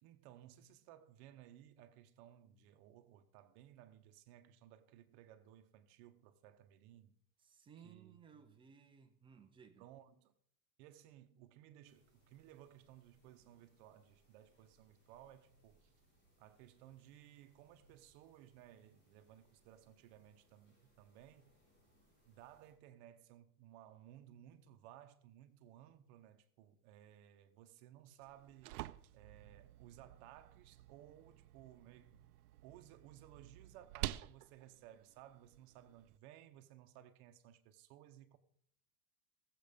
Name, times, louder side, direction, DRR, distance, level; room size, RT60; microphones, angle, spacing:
voice 1, 0.0-7.2 7.8-8.6 9.8-10.3 10.8-15.9 16.4-21.5 22.2-28.8 29.1-32.2 32.6-38.4, right 12 dB, 45° right, 1.1 m, -59 dB
voice 2, 7.4-9.9, right 7 dB, 10° right, 0.6 m, -60 dB
sound 1, 11.8-22.7, right 1 dB, 25° left, 6.7 m, -74 dB
sound 2, 28.2-36.2, right 16 dB, 90° right, 0.6 m, -50 dB
16.0 x 7.8 x 5.3 m
supercardioid pair, 175°, 44 cm